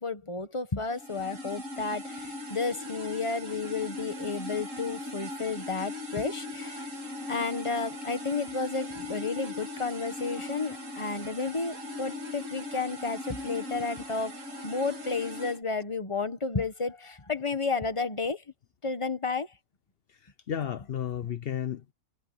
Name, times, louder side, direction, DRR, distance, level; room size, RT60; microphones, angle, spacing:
voice 1, 0.0-6.9 7.3-14.3 14.6-18.4 18.8-19.5, left 4 dB, 20° left, 1.2 m, -32 dB
sound 1, 0.9-15.6, left 2 dB, 45° right, 3.2 m, -39 dB
voice 2, 20.2-21.9, left 9 dB, 65° left, 0.6 m, -33 dB
omnidirectional pair, 1.9 m